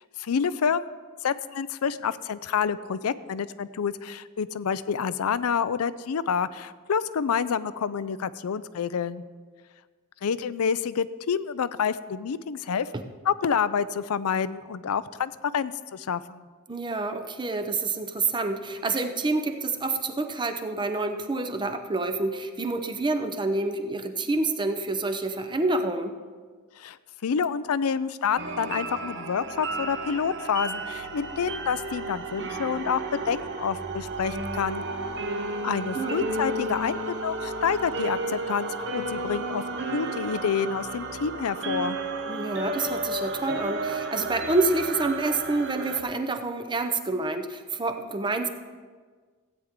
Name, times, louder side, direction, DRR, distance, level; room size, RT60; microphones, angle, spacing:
voice 1, 0.2-0.9 1.2-9.2 10.2-12.9 13.3-16.5 26.8-27.0 27.2-34.8 35.6-39.6 39.9-42.0, left 6 dB, 70° left, 16 dB, 0.4 m, -28 dB
voice 2, 16.7-26.1 35.9-36.3 42.3-48.5, right 3 dB, 20° right, 7 dB, 0.7 m, -28 dB
sound 1, 28.4-46.0, right 2 dB, 55° right, 0.9 m, -33 dB
16.0 x 9.2 x 3.7 m, 1.5 s
head